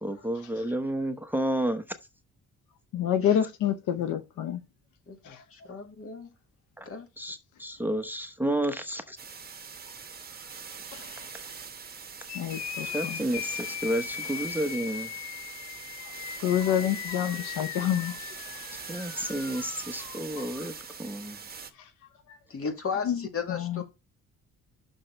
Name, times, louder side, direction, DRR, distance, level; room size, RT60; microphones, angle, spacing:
voice 1, 0.0-1.8 6.8-6.9 7.2-9.2 12.8-15.1 18.9-21.4, right 1 dB, 5° right, 0.9 m, -31 dB
voice 2, 2.9-4.6 5.2-5.4 10.9-11.3 12.3-13.2 16.4-18.4 20.4-20.5 23.0-23.2 23.5-23.8, left 10 dB, 85° left, 0.9 m, -28 dB
voice 3, 5.1-6.3 6.9-7.1 10.3-10.5 22.5-23.8, left 6 dB, 45° left, 2.2 m, -35 dB
sound 1, 9.2-21.7, right 6 dB, 30° right, 1.3 m, -42 dB
sound 2, 12.2-20.2, left 11 dB, 65° left, 0.6 m, -39 dB
6.4 x 6.3 x 4.4 m
cardioid pair, 90°, 30 cm